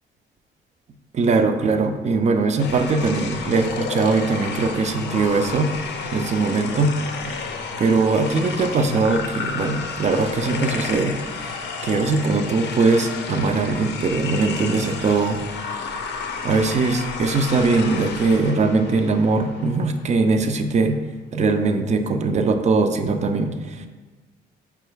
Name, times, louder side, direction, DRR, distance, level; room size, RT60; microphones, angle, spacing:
voice 1, 1.1-5.7 6.1-7.4 7.8-15.4 16.4-21.0 21.3-23.9, right 3 dB, 35° right, 7 dB, 0.4 m, -21 dB
sound 1, 2.6-19.9, left 5 dB, 60° left, 0.5 m, -31 dB
4.9 x 2.3 x 3.2 m, 1.2 s
cardioid pair, 90°, 20 cm